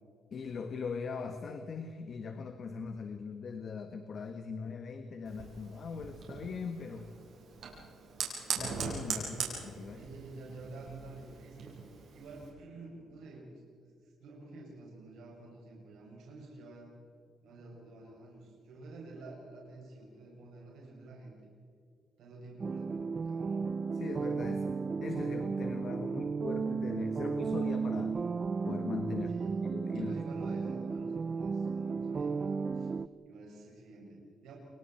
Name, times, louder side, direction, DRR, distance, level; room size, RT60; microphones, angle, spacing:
voice 1, 0.3-7.1 8.5-10.0 23.9-24.7 25.0-28.2 28.6-29.3 29.7-30.2, left 5 dB, 55° left, 7 dB, 1.6 m, -40 dB
Fire, 5.2-12.5, right 5 dB, 65° right, 7.3 m, -41 dB
voice 2, 9.1-9.5 9.9-11.7 12.1-16.9 17.4-21.5 22.2-23.7 29.2-29.7 29.9-32.9 33.2-34.5, right 2 dB, 85° right, -3 dB, 6.9 m, -49 dB
sound 1, 22.6-33.1, right 5 dB, 35° right, 0.6 m, -34 dB
30.0 x 24.0 x 4.5 m, 2.4 s
cardioid pair, 90°, 0 cm